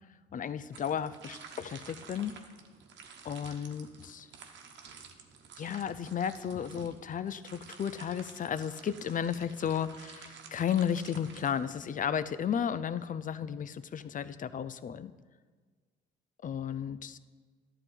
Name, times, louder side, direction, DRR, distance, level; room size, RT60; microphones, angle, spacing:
voice 1, 0.3-2.3 3.2-4.3 5.6-15.1 16.4-17.2, left 8 dB, 40° left, 15 dB, 0.5 m, -34 dB
sound 1, 0.7-12.1, right 6 dB, 55° right, 1.2 m, -52 dB
11.5 x 3.9 x 7.8 m, 1.5 s
supercardioid pair, 60°, 21 cm